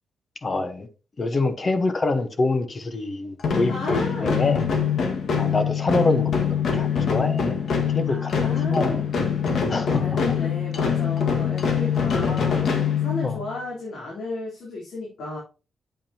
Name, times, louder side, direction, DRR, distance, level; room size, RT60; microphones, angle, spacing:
voice 1, 0.4-0.9 1.2-4.6 5.3-7.6 7.9-8.3 8.6-9.0 9.7-10.0 10.3-10.4 13.2-13.4, left 3 dB, 35° left, 1.1 m, -25 dB
sound 1, 3.4-13.6, left 7 dB, 65° left, 1.8 m, -24 dB
voice 2, 3.7-4.6 8.1-9.2 9.9-15.4, left 2 dB, 90° left, 3.7 m, -34 dB
9.0 x 8.4 x 2.9 m
wide cardioid pair, 145°, 0 cm